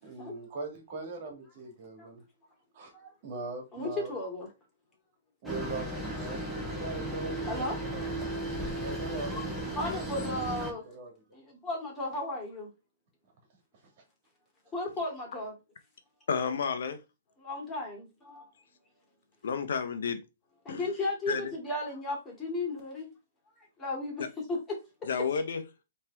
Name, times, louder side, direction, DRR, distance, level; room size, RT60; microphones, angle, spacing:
voice 1, 0.0-2.2 2.7-2.9 3.2-4.1 5.4-7.4 7.8-8.3 8.8-11.1, right 3 dB, 50° right, 1.9 m, -41 dB
voice 2, 3.7-4.5 7.4-7.8 9.3-10.8 11.3-12.7 14.7-15.5 17.4-18.5 20.6-23.1 23.6-24.8, left 2 dB, 15° left, 2.3 m, -35 dB
sound 1, 5.4-10.7, right 1 dB, ahead, 1.4 m, -35 dB
voice 3, 16.3-17.0 19.4-20.2 20.7-20.8 21.3-21.5 25.1-25.6, left 6 dB, 75° left, 0.7 m, -31 dB
4.5 x 3.2 x 3.4 m
hypercardioid pair, 140°, 0 cm